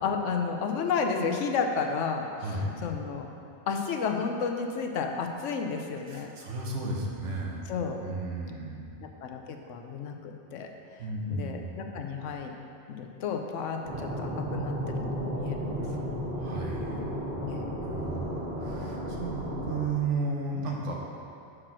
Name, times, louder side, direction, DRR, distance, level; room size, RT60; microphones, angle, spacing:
voice 1, 0.0-2.5 2.8-3.3 3.7-6.3 7.7-8.0 9.0-10.7 11.3-12.5 12.9-16.3 17.4-17.7, left 5 dB, 90° left, 4 dB, 1.0 m, -32 dB
voice 2, 2.4-2.8 6.1-7.6 8.0-8.9 11.0-11.7 15.9-16.0 16.3-17.0 17.8-21.0, right 3 dB, 80° right, -1 dB, 1.3 m, -34 dB
sound 1, 13.8-19.9, equal, 55° right, 1.6 m, -33 dB
6.0 x 4.9 x 6.0 m, 2.6 s
omnidirectional pair, 1.2 m